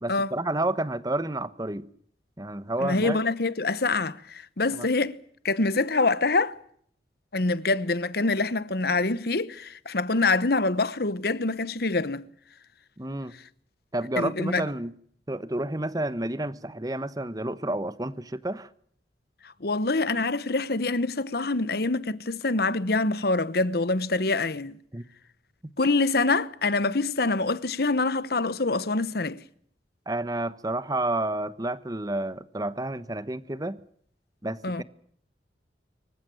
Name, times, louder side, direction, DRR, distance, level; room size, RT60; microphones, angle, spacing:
voice 1, 0.0-1.9 2.4-3.2 4.7-4.9 13.0-13.3 13.9-14.9 15.3-18.7 24.9-25.0 25.6-25.7 30.1-33.8 34.4-34.8, right 1 dB, 20° right, 1.1 m, -30 dB
voice 2, 2.8-5.1 5.4-6.5 7.3-12.2 14.2-14.7 19.6-24.8 25.8-29.4 34.6-34.8, left 3 dB, 60° left, 1.1 m, -25 dB
25.5 x 15.5 x 9.3 m
head